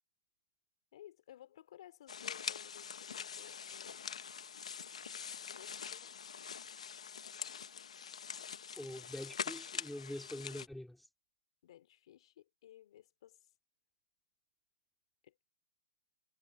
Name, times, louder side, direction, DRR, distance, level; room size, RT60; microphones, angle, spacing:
voice 1, 0.9-4.1 5.5-6.2 11.6-13.5 15.2-15.4, left 12 dB, 60° left, 3.5 m, -58 dB
sound 1, 2.1-10.7, left 7 dB, 85° left, 1.2 m, -44 dB
voice 2, 8.8-11.1, left 1 dB, ahead, 3.9 m, -45 dB
hypercardioid pair, 145°, 3 cm